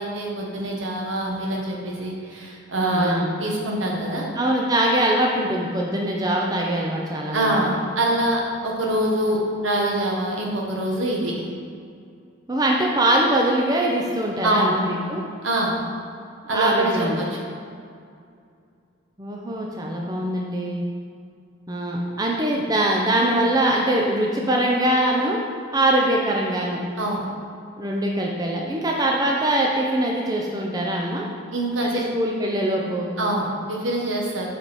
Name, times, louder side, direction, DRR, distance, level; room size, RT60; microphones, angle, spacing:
voice 1, 0.0-3.1 3.4-4.3 7.3-11.4 14.4-14.8 15.4-15.8 16.5-17.4 27.0-27.2 31.5-32.0 33.2-34.5, right 1 dB, 75° right, -1 dB, 1.3 m, -24 dB
voice 2, 2.8-3.3 4.4-7.6 12.5-15.2 16.5-17.2 19.2-20.8 21.7-25.4 25.7-26.8 27.8-31.2 31.8-33.1, right 1 dB, 20° right, -1 dB, 0.6 m, -22 dB
7.6 x 5.1 x 4.2 m, 2.3 s
head